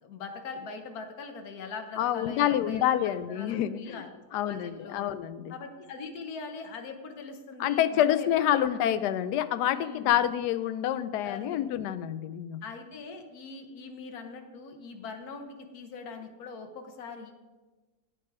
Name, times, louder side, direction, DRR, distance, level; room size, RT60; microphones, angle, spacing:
voice 1, 0.0-5.1 5.5-8.8 9.7-10.2 11.2-11.7 12.6-15.5 15.7-17.3, left 4 dB, 70° left, 5 dB, 1.5 m, -42 dB
voice 2, 2.0-4.0 4.3-5.6 7.6-12.6, left 11 dB, 85° left, 13 dB, 1.2 m, -27 dB
9.0 x 8.9 x 4.7 m, 1.2 s
omnidirectional pair, 1.7 m